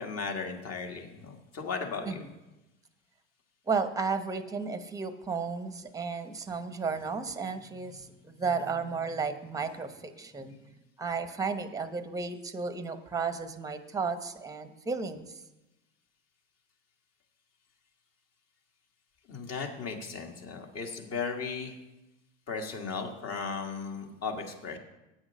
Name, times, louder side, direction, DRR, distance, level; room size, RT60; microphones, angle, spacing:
voice 1, 0.0-2.3 19.3-21.8 22.5-24.8, left 5 dB, 40° left, 3 dB, 1.8 m, -36 dB
voice 2, 3.7-10.6 11.0-15.3, right 5 dB, 10° right, 10 dB, 0.8 m, -33 dB
8.7 x 6.3 x 6.2 m, 0.98 s
hypercardioid pair, 90°, 37 cm